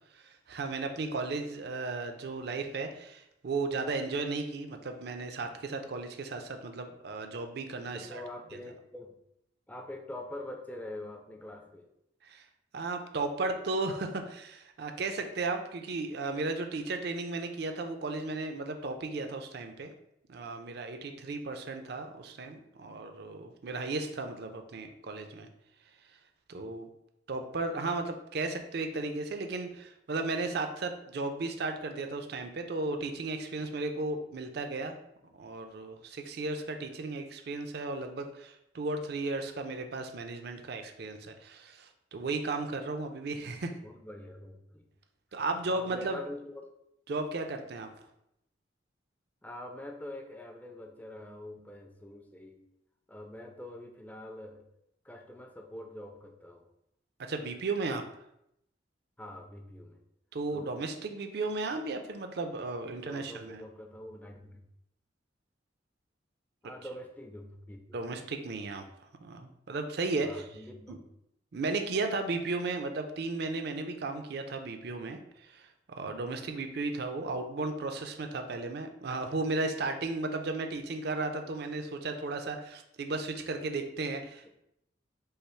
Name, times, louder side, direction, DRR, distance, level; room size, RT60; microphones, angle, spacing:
voice 1, 0.1-8.2 12.2-12.4 12.7-19.9 20.3-25.5 26.5-26.9 27.3-34.9 35.4-43.8 45.3-46.2 47.1-47.9 57.3-58.0 60.3-63.6 67.9-68.8 69.2-70.5 70.9-71.0 71.5-75.7 76.0-84.6, right 3 dB, 60° right, 6 dB, 0.5 m, -35 dB
voice 2, 7.9-9.1 9.7-11.9 43.3-44.8 45.7-46.6 49.4-52.6 53.1-54.6 55.0-56.7 59.2-60.0 60.5-60.7 63.0-64.6 66.6-68.1 70.2-71.0, left 1 dB, 10° left, 3 dB, 0.4 m, -45 dB
5.5 x 2.0 x 4.3 m, 0.80 s
head